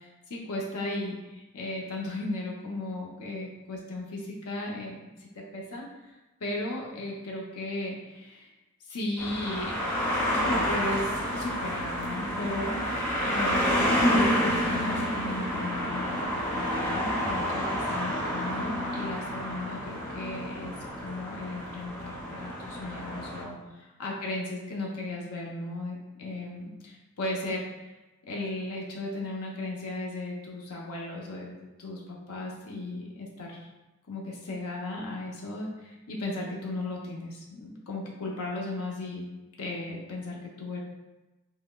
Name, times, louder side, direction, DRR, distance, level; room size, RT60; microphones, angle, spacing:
voice 1, 0.0-6.2 6.4-8.5 8.9-9.8 10.4-12.8 13.2-20.7 21.0-27.9 28.3-33.7 34.1-39.2 39.6-40.8, left 2 dB, 90° left, -2 dB, 0.7 m, -36 dB
sound 1, 9.2-23.4, equal, 10° left, 0.8 m, -29 dB
5.6 x 2.1 x 2.2 m, 1.1 s
head